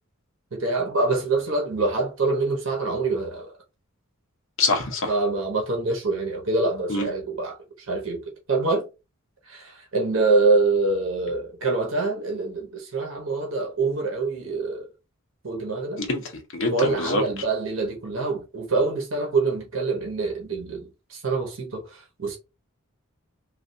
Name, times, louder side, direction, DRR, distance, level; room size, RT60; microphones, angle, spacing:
voice 1, 0.5-3.5 5.1-7.6 7.9-8.2 8.5-8.9 9.5-14.9 15.4-16.0 16.7-22.4, right 3 dB, 65° right, 1.0 m, -25 dB
voice 2, 4.6-5.1 6.9-7.1 16.0-17.2, left 2 dB, 60° left, 0.8 m, -25 dB
3.3 x 2.4 x 2.6 m
head